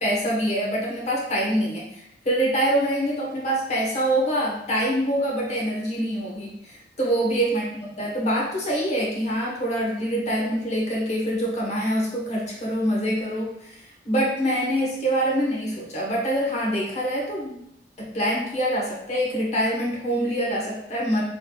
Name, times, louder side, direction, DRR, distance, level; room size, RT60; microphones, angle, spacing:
voice 1, 0.0-17.6 18.0-21.2, equal, 40° left, -3 dB, 1.1 m, -25 dB
5.0 x 3.3 x 2.3 m, 0.75 s
head